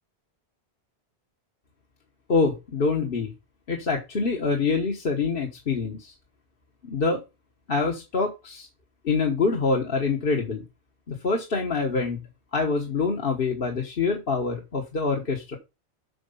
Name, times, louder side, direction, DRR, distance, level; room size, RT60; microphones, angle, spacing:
voice 1, 2.3-3.3 3.7-6.1 6.8-7.2 7.7-8.7 9.0-10.6 11.1-12.2 12.5-15.6, left 4 dB, 60° left, 1 dB, 1.4 m, -25 dB
7.7 x 4.5 x 5.5 m, 0.25 s
omnidirectional pair, 1.1 m